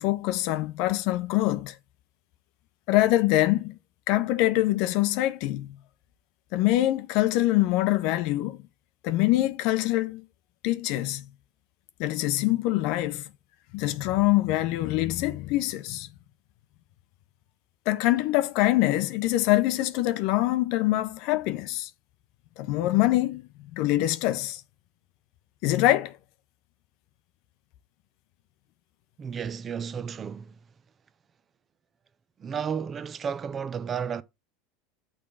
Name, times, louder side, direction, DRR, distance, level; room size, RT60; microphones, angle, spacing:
voice 1, 0.0-1.7 2.9-3.8 4.1-5.7 6.5-8.6 9.0-10.2 10.6-11.2 12.0-13.3 13.7-16.1 17.9-21.9 22.6-24.6 25.6-26.2, left 16 dB, 60° left, 0.6 m, -24 dB
voice 2, 29.2-30.6 32.4-34.2, right 7 dB, 30° right, 0.6 m, -32 dB
6.5 x 3.6 x 5.7 m
hypercardioid pair, 85°, 0 cm